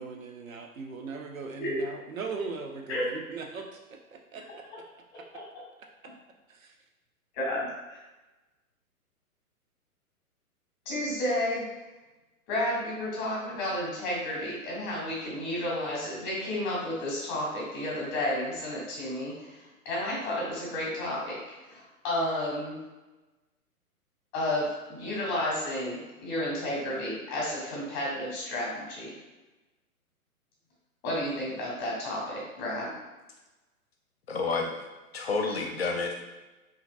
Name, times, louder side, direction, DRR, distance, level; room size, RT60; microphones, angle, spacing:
voice 1, 0.0-4.6 5.2-5.3 6.5-6.7, right 4 dB, 65° right, 3 dB, 0.6 m, -39 dB
voice 2, 7.3-8.0 10.9-11.6 12.5-22.8 24.3-29.1 31.0-32.9, left 1 dB, 20° left, -4 dB, 0.7 m, -32 dB
voice 3, 34.3-34.7 35.1-36.2, left 4 dB, 45° left, 2 dB, 0.5 m, -29 dB
2.8 x 2.5 x 2.5 m, 1.1 s
figure-of-eight pair, 120°, 44 cm